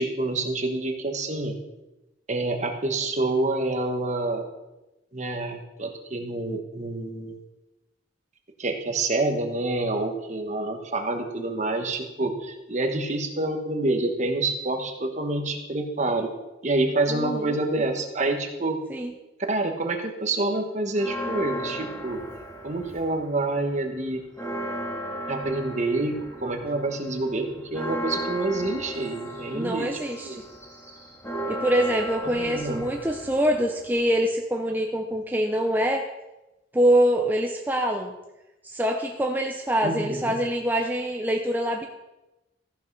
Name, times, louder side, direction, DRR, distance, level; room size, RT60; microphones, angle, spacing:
voice 1, 0.0-1.6 2.3-4.5 5.1-7.4 8.6-16.3 16.6-18.8 19.5-22.2 22.6-24.3 25.3-29.9 30.2-30.4 32.2-32.9 39.8-40.3, right 2 dB, 40° right, 4 dB, 1.3 m, -27 dB
voice 2, 17.1-17.6 18.9-19.1 29.5-30.4 31.5-36.0 36.7-38.1 38.6-41.9, equal, 10° right, 2 dB, 0.6 m, -24 dB
Church bell, 20.9-23.3 23.7-23.8 24.1-34.2, equal, 15° left, 2.0 m, -35 dB
14.0 x 5.6 x 5.4 m, 1.0 s
head